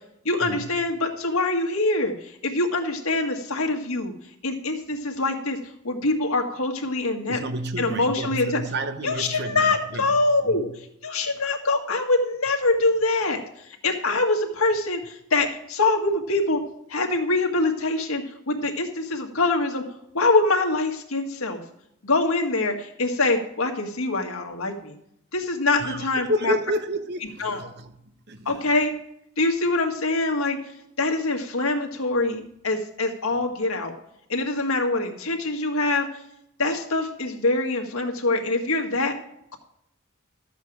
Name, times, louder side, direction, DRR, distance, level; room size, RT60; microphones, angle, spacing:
voice 1, 0.3-4.1 4.4-5.6 5.8-7.4 7.8-8.6 9.0-10.7 11.0-13.4 13.8-16.6 16.9-19.8 20.1-21.6 22.0-25.0 25.3-26.5 27.4-27.7 28.5-28.9 29.4-30.6 31.0-33.9 34.3-36.1 36.6-39.1, left 2 dB, 90° left, 1.8 m, -24 dB
voice 2, 7.3-10.2 10.4-10.7 25.8-27.9 28.3-28.6, right 1 dB, 55° right, 0.9 m, -30 dB
13.0 x 8.2 x 4.9 m
head